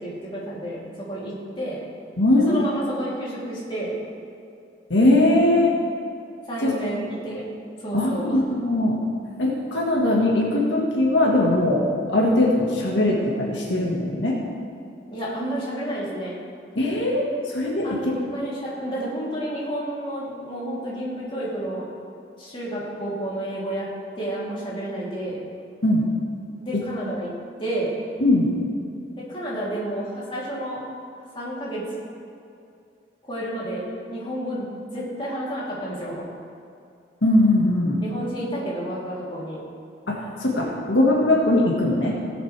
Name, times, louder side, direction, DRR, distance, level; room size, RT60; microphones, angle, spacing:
voice 1, 0.0-0.8 1.1-1.8 2.5-3.9 6.5-7.4 7.8-8.4 15.1-16.4 17.8-21.9 22.4-23.9 24.2-25.4 26.6-27.3 27.6-27.9 29.3-30.8 31.3-31.8 33.2-36.2 38.0-39.6, right 1 dB, 30° left, -7 dB, 3.1 m, -30 dB
voice 2, 2.2-2.6 4.9-5.7 6.6-6.7 7.9-9.0 9.4-14.4 16.7-18.1 25.8-26.1 28.2-28.5 37.2-38.0 40.1-42.2, left 1 dB, 85° left, -2 dB, 1.7 m, -20 dB
17.5 x 8.0 x 3.4 m, 2.4 s
head